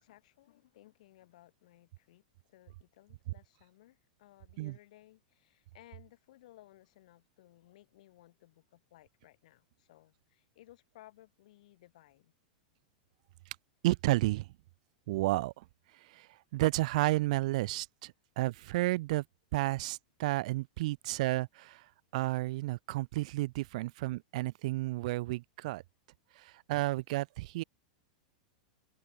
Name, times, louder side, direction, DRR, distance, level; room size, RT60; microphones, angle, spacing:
voice 1, 0.0-2.2 2.5-12.3, left 15 dB, 65° left, 5.6 m, -60 dB
voice 2, 13.8-14.5 15.1-15.6 16.1-16.3 16.5-19.2 19.5-21.8 22.1-25.8 26.4-27.6, right 19 dB, 60° right, 1.0 m, -31 dB
hypercardioid pair, 115°, 4 cm